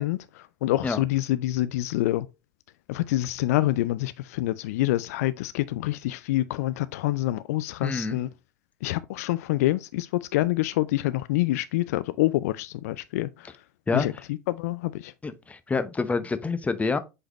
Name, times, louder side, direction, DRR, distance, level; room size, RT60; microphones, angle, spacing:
voice 1, 0.0-2.3 2.9-8.3 8.8-13.5 13.9-14.1 14.5-15.1, left 16 dB, 65° left, 0.4 m, -26 dB
voice 2, 7.8-8.2 13.9-14.1 15.2-17.0, left 4 dB, 15° left, 0.8 m, -27 dB
7.8 x 3.9 x 3.0 m
figure-of-eight pair, 80°, 9 cm